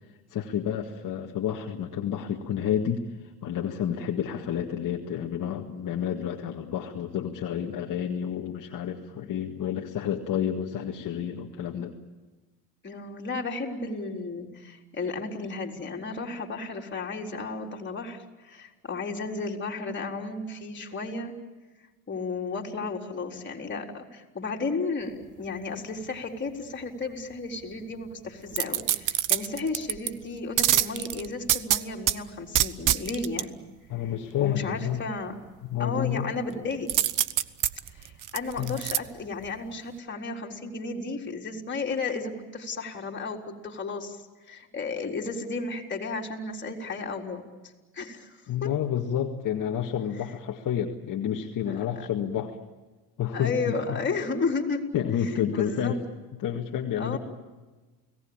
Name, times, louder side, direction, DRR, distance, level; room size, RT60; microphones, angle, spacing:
voice 1, 0.3-11.9 33.9-35.0 35.7-36.3 38.6-38.8 48.5-52.6 53.2-53.8 54.9-56.0 56.4-57.2, left 9 dB, 45° left, 2 dB, 2.0 m, -30 dB
voice 2, 12.8-21.3 22.1-33.6 34.0-34.1 34.4-35.3 35.8-36.9 37.9-47.4 47.9-48.7 51.7-52.1 53.3-54.8 55.2-56.0 57.0-57.2, left 3 dB, 25° left, 1 dB, 4.1 m, -33 dB
sound 1, 28.5-30.1 30.6-32.2 32.5-33.4 36.9-39.0 39.4-39.5, right 12 dB, 45° right, 1.1 m, -25 dB
30.0 x 18.5 x 8.9 m, 1.2 s
supercardioid pair, 105°, 45 cm